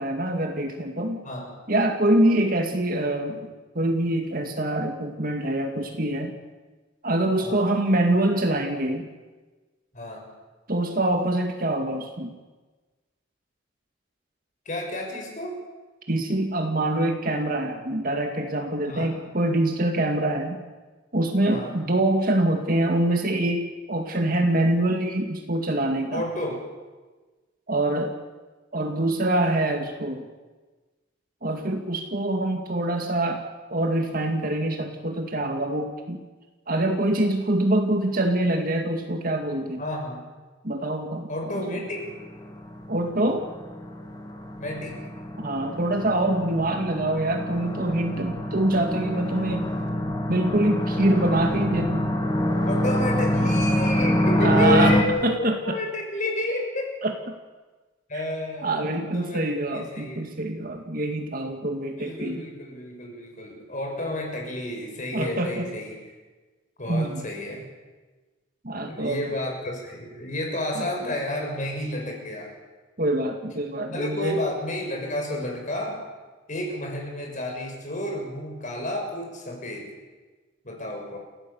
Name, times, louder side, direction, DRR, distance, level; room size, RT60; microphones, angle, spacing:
voice 1, 0.0-1.2 1.7-6.4 7.0-9.1 10.7-12.3 16.1-20.6 21.1-26.2 27.7-28.1 28.7-30.3 31.4-33.4 33.7-36.2 36.7-39.8 40.6-41.8 42.9-43.5 45.4-49.7 50.3-52.1 54.4-55.8 57.0-57.2 58.6-62.5 65.1-65.7 66.9-67.3 68.6-69.3 73.0-74.4, right 1 dB, 45° right, 4 dB, 2.1 m, -25 dB
voice 2, 9.9-10.3 14.6-15.6 18.8-19.1 21.5-21.8 26.1-26.6 39.8-40.3 41.3-42.1 44.6-45.0 52.7-57.0 58.1-60.3 62.0-65.9 66.8-67.7 68.8-72.5 73.9-76.1 76.5-79.9 80.6-81.2, left 1 dB, 40° left, 1 dB, 6.6 m, -31 dB
sound 1, 41.9-55.0, equal, 20° left, 2.6 m, -26 dB
29.5 x 17.0 x 7.1 m, 1.3 s
head